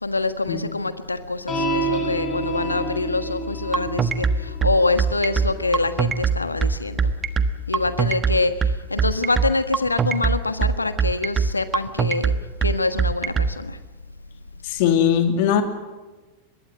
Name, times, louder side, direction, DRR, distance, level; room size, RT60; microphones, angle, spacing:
voice 1, 0.0-7.0 7.7-12.3 12.6-13.8, left 3 dB, 80° left, 11 dB, 1.5 m, -25 dB
sound 1, 1.5-8.1, equal, 20° left, 6.7 m, -30 dB
sound 2, 3.7-13.5, right 6 dB, 20° right, 1.3 m, -21 dB
voice 2, 14.8-15.6, left 9 dB, 50° left, 7 dB, 2.9 m, -19 dB
24.0 x 21.5 x 7.9 m, 1.2 s
figure-of-eight pair, 90°, 0 cm